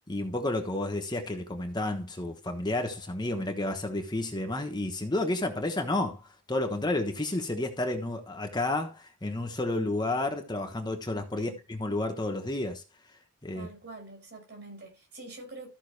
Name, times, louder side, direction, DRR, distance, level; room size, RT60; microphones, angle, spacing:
voice 1, 0.1-12.8 13.4-13.7, left 2 dB, 20° left, 1.1 m, -31 dB
voice 2, 13.5-15.7, right 2 dB, 50° right, 5.1 m, -45 dB
14.0 x 5.6 x 3.3 m
head